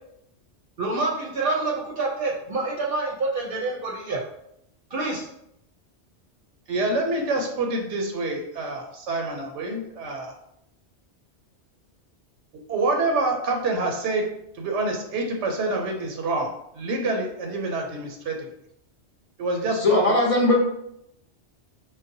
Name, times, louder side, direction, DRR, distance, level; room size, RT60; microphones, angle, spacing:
voice 1, 0.8-4.2 4.9-5.3, right 3 dB, 65° right, -3 dB, 0.7 m, -27 dB
voice 2, 6.7-10.3 12.7-14.3 14.5-16.5 16.7-18.5 19.4-20.0, right 2 dB, 90° right, 2 dB, 0.9 m, -26 dB
voice 3, 19.8-20.5, left 2 dB, 40° left, -2 dB, 0.6 m, -19 dB
3.9 x 2.0 x 2.6 m, 0.76 s
omnidirectional pair, 1.2 m